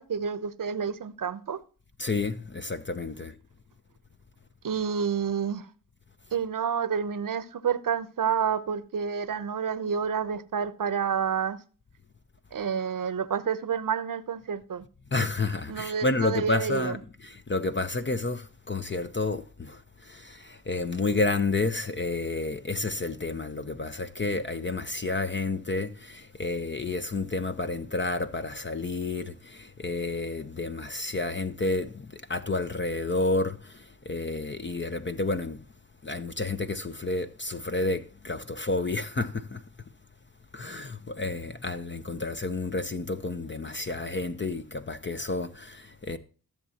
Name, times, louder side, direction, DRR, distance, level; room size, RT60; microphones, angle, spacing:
voice 1, 0.0-1.6 4.6-5.7 6.3-11.6 12.5-14.8 15.7-17.0, right 7 dB, 60° right, 0.9 m, -29 dB
voice 2, 2.0-3.4 15.1-35.6 36.0-39.6 40.5-46.2, left 3 dB, 30° left, 0.8 m, -30 dB
14.0 x 7.1 x 2.9 m
cardioid pair, 40°, 37 cm